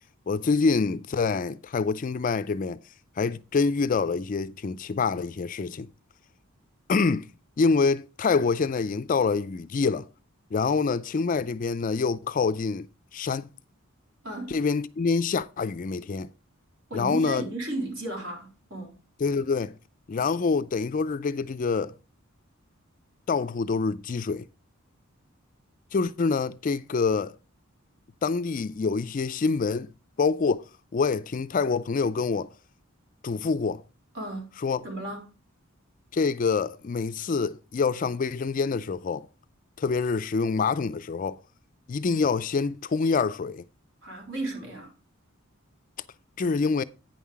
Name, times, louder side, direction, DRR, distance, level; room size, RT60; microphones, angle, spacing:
voice 1, 0.3-2.8 3.2-5.9 6.9-7.2 7.6-10.1 10.5-12.9 13.1-13.5 14.5-16.3 16.9-17.4 19.2-19.7 20.1-21.9 23.3-24.4 25.9-27.4 28.2-29.9 30.2-30.6 30.9-32.5 33.2-33.8 34.6-34.8 36.1-39.3 39.8-41.4 41.9-43.6 46.4-46.8, left 4 dB, 40° left, 0.4 m, -26 dB
voice 2, 14.2-14.6 16.9-19.0 34.1-34.5 34.8-35.3 44.0-44.9, right 1 dB, 65° right, 3.2 m, -34 dB
9.2 x 5.6 x 4.7 m
head